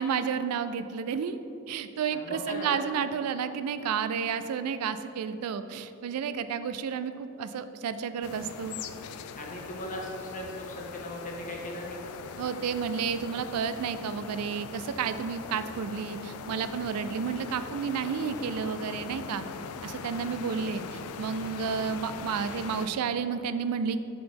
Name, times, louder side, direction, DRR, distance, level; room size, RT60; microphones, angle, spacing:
voice 1, 0.0-1.4 1.7-8.8 12.4-19.4 19.8-24.0, right 6 dB, 75° right, 11 dB, 0.3 m, -31 dB
voice 2, 2.1-2.8 9.4-12.1, left 1 dB, 35° left, 0 dB, 0.9 m, -38 dB
sound 1, 8.2-22.9, left 6 dB, 70° left, 0.3 m, -41 dB
5.7 x 3.9 x 5.2 m, 2.9 s
head